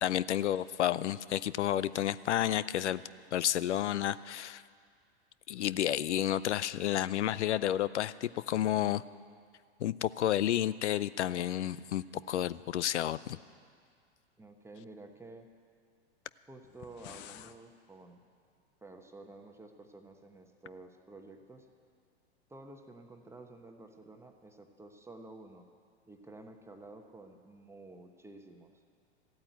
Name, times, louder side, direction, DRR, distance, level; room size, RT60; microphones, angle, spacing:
voice 1, 0.0-3.0 3.3-4.6 5.5-9.0 9.8-13.4, left 11 dB, 85° left, 18 dB, 0.5 m, -31 dB
voice 2, 14.4-15.5 16.5-18.2 18.8-21.7 22.5-25.7 26.1-28.7, right 2 dB, 10° right, 4 dB, 1.0 m, -51 dB
sound 1, 16.6-17.6, left 13 dB, 35° left, 0.6 m, -50 dB
14.5 x 8.7 x 9.3 m, 2.1 s
hypercardioid pair, 105°, 34 cm